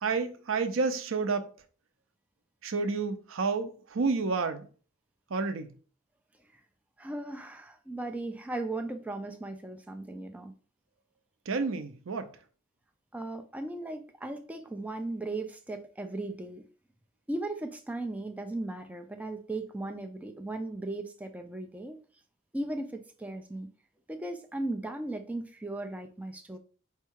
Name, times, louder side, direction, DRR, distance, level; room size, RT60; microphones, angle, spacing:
voice 1, 0.0-1.5 2.6-4.7 5.3-5.7 11.5-12.3, right 4 dB, 70° right, 0.5 m, -30 dB
voice 2, 7.0-10.5 13.1-16.6 17.3-22.0 22.5-23.7 24.1-26.6, right 2 dB, 5° right, 0.3 m, -37 dB
4.5 x 2.3 x 4.5 m
head